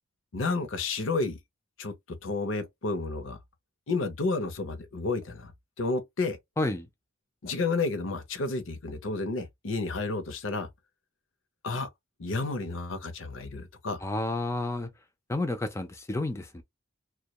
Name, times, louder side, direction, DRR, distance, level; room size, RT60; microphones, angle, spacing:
voice 1, 0.3-1.4 1.8-1.9 2.2-3.4 3.9-5.5 5.8-6.4 7.4-10.7 11.6-11.9 12.2-14.0, left 3 dB, 65° left, 0.6 m, -31 dB
voice 2, 14.0-14.9 15.3-16.6, left 2 dB, 15° left, 0.4 m, -30 dB
2.3 x 2.2 x 2.8 m
head